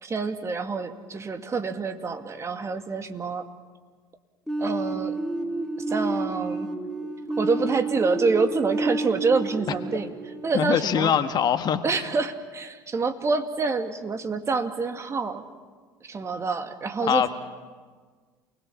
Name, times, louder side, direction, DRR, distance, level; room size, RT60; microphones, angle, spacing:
voice 1, 0.0-3.5 4.6-5.2 5.9-6.7 7.4-10.1 10.4-11.1 11.8-15.5 16.0-17.3, right 4 dB, 30° right, 7 dB, 2.1 m, -27 dB
sound 1, 4.5-11.2, right 2 dB, 5° left, 2.8 m, -30 dB
voice 2, 10.5-12.0 17.0-17.3, left 8 dB, 45° left, 9 dB, 1.6 m, -23 dB
29.0 x 20.5 x 7.2 m, 1.5 s
figure-of-eight pair, 65°, 10 cm